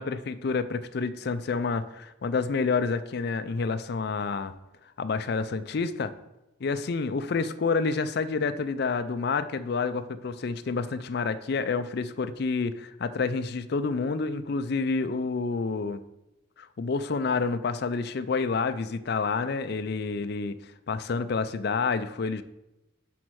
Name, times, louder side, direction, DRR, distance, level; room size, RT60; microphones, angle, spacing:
voice 1, 0.0-4.5 5.0-6.1 6.6-16.0 16.6-22.4, left 4 dB, 55° left, 11 dB, 0.4 m, -29 dB
6.2 x 5.9 x 4.6 m, 0.94 s
head